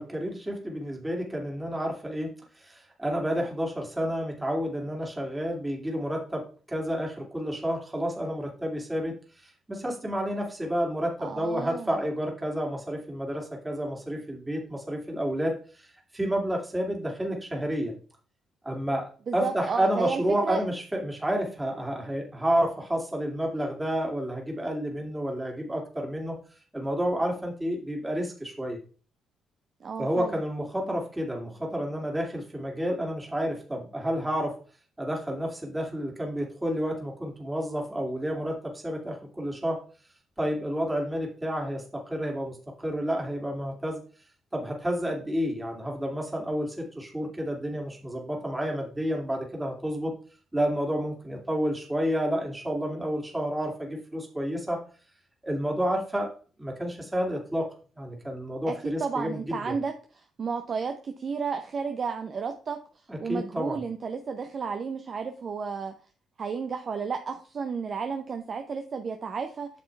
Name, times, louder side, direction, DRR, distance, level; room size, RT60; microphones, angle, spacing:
voice 1, 0.0-9.1 9.4-15.9 16.1-17.9 18.6-26.4 26.7-28.8 30.0-34.6 35.0-39.8 40.4-44.0 44.5-50.1 50.5-54.8 55.4-56.3 56.6-59.7 63.1-63.8, equal, 15° right, 0 dB, 2.5 m, -30 dB
voice 2, 11.2-11.9 19.3-20.6 29.8-30.3 58.7-59.9 60.4-62.8 63.2-65.9 66.4-69.7, right 5 dB, 45° right, 6 dB, 0.8 m, -32 dB
8.3 x 7.0 x 3.3 m, 0.38 s
cardioid pair, 90°, 0 cm